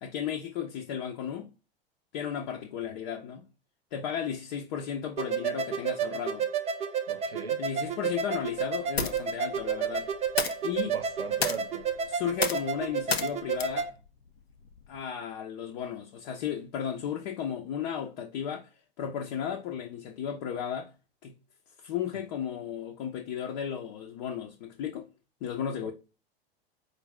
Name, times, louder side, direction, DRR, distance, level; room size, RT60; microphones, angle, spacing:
voice 1, 0.0-1.5 2.1-3.4 3.9-6.4 7.6-10.1 10.6-10.9 12.1-13.9 14.9-18.7 19.0-20.9 21.2-21.3 21.8-25.1 25.4-25.9, left 8 dB, 50° left, 0.6 m, -34 dB
sound 1, 5.2-13.9, right 7 dB, 20° right, 0.5 m, -31 dB
voice 2, 7.1-7.6 10.9-11.9 25.8-25.9, right 5 dB, 90° right, 0.6 m, -38 dB
sound 2, 8.0-15.0, left 5 dB, 90° left, 0.5 m, -36 dB
4.5 x 2.6 x 3.3 m
figure-of-eight pair, 85°, 30 cm